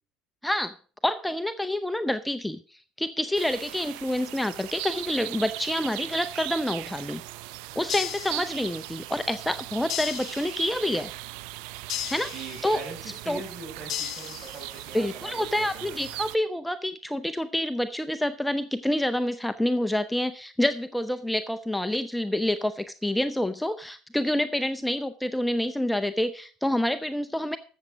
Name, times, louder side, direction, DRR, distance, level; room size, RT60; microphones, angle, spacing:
voice 1, 0.4-0.7 1.0-7.2 7.8-11.1 12.1-12.3 12.6-12.8 13.3-13.4 14.9-27.6, left 1 dB, 5° left, 10 dB, 0.7 m, -27 dB
sound 1, 3.3-16.4, right 18 dB, 75° right, 0.5 m, -39 dB
sound 2, 7.9-9.0 9.9-10.9 11.9-12.9 13.9-14.9, left 12 dB, 55° left, 0.8 m, -36 dB
voice 2, 12.3-16.0, right 3 dB, 45° right, 3 dB, 6.0 m, -42 dB
13.5 x 7.4 x 5.0 m, 0.40 s
hypercardioid pair, 75°, 0 cm